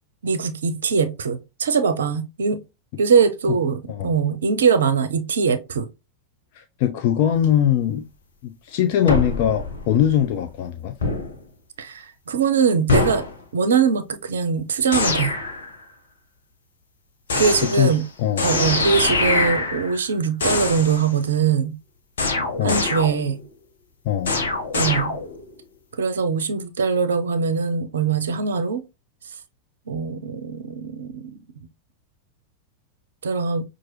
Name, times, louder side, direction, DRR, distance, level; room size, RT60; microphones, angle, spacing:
voice 1, 0.2-2.6 3.0-5.9 11.8-13.2 13.5-15.3 17.4-18.0 18.4-21.7 22.6-23.4 24.7-25.1 26.0-28.8 29.9-31.4 33.2-33.6, right 6 dB, 65° right, 0.5 m, -22 dB
voice 2, 6.5-8.1 8.4-10.9 17.6-18.5 22.6-22.8 24.0-24.3, left 10 dB, 45° left, 0.5 m, -22 dB
sound 1, 9.1-10.3 11.0-11.4 12.9-13.3 14.9-15.7 17.3-18.1 18.4-20.1 20.4-21.1 22.2-23.4 24.3-25.6, left 3 dB, 65° left, 1.0 m, -24 dB
5.9 x 2.4 x 3.1 m
figure-of-eight pair, 90°, 0 cm